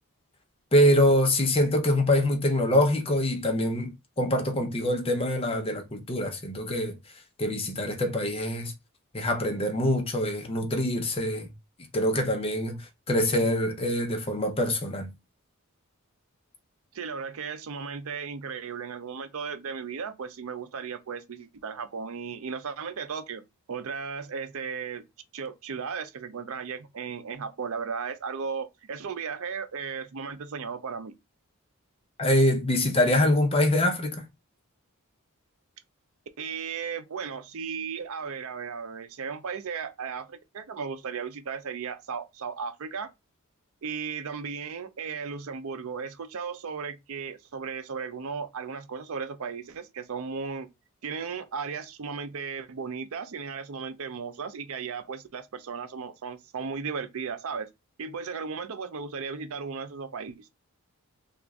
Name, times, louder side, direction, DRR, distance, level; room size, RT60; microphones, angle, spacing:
voice 1, 0.7-3.9 4.2-7.0 7.4-8.7 9.1-11.5 11.9-15.1 32.2-34.2, left 1 dB, 25° left, 0.6 m, -24 dB
voice 2, 16.9-23.4 23.7-25.0 25.3-31.1 36.4-43.1 43.8-50.7 51.0-57.7 58.0-60.5, right 5 dB, 70° right, 0.5 m, -35 dB
3.0 x 2.5 x 3.5 m
head